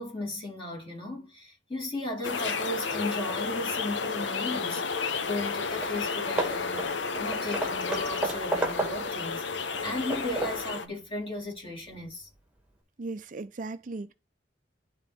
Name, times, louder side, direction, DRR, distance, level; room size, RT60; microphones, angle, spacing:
voice 1, 0.0-6.9 7.2-9.4 9.8-12.3, left 1 dB, 30° left, 4.0 m, -36 dB
sound 1, 2.2-10.9, left 5 dB, 85° left, 0.8 m, -32 dB
Hammer / Wood, 5.4-5.5 5.8-6.0 6.4-9.2 9.7-10.7, right 2 dB, 5° right, 1.5 m, -33 dB
voice 2, 13.0-14.1, right 3 dB, 45° right, 0.5 m, -37 dB
11.0 x 3.9 x 3.5 m
head